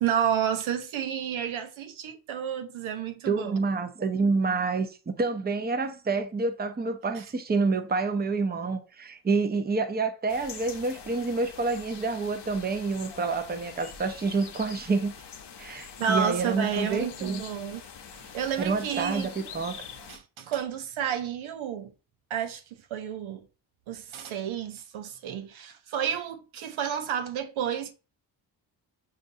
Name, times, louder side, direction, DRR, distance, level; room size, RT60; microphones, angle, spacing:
voice 1, 0.0-3.6 7.2-7.3 16.0-17.8 18.1-19.3 20.1-21.9 22.3-22.6 22.9-23.4 23.9-27.9, right 8 dB, 80° right, 0.6 m, -31 dB
voice 2, 3.3-15.1 15.6-17.4 18.6-19.8, right 4 dB, 20° right, 0.6 m, -28 dB
sound 1, 10.3-20.2, left 6 dB, 55° left, 0.8 m, -45 dB
5.3 x 2.6 x 2.6 m
cardioid pair, 50°, 48 cm